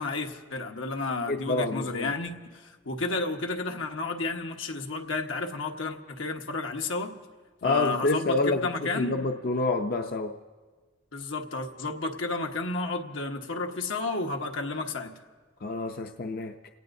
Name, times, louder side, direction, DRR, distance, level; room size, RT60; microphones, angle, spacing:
voice 1, 0.0-7.1 7.6-9.2 11.1-15.1, left 3 dB, 85° left, 3 dB, 1.2 m, -32 dB
voice 2, 1.3-2.1 7.6-10.3 15.6-16.5, left 3 dB, 50° left, 5 dB, 0.5 m, -28 dB
29.0 x 18.0 x 2.7 m, 1.4 s
head